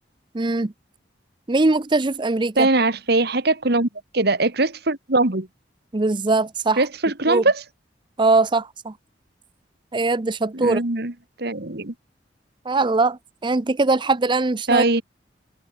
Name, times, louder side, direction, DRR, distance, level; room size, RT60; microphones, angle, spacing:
voice 1, 0.3-0.7 1.5-2.7 5.9-6.8 7.3-7.4 8.2-8.9 9.9-10.8 12.7-14.8, right 3 dB, 25° right, 0.6 m, -21 dB
voice 2, 2.6-3.9 4.1-5.5 6.8-7.6 10.5-11.1 11.4-11.9 14.7-15.0, right 2 dB, 60° right, 2.1 m, -21 dB
head